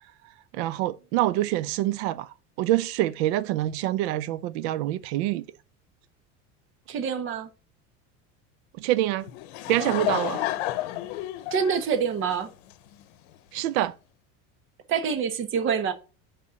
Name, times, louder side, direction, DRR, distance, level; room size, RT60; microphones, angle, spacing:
voice 1, 0.5-2.3 2.6-5.5 8.8-9.3 9.7-10.5 13.5-13.9, right 14 dB, 85° right, 0.5 m, -26 dB
voice 2, 6.9-7.5 11.5-12.5 14.9-15.9, right 6 dB, 40° right, 1.2 m, -26 dB
Laughter / Crowd, 9.2-13.0, left 15 dB, 90° left, 0.8 m, -31 dB
5.5 x 5.4 x 6.4 m
cardioid pair, 145°, 31 cm